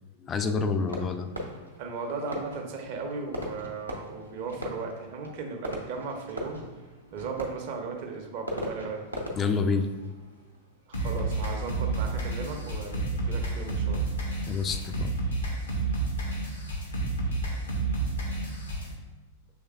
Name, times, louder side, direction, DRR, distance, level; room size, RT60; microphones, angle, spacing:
voice 1, 0.2-1.3 9.4-9.9 14.5-15.1, left 4 dB, 25° left, 8 dB, 0.4 m, -28 dB
Fireworks, 0.9-11.4, left 1 dB, 85° right, 0.6 m, -40 dB
voice 2, 1.8-6.6 7.1-9.0 10.9-14.1, right 4 dB, 45° right, 2 dB, 0.6 m, -36 dB
sound 1, 10.9-18.9, right 2 dB, 70° left, 0.9 m, -30 dB
6.3 x 3.2 x 2.3 m, 1.2 s
figure-of-eight pair, 90°, 0 cm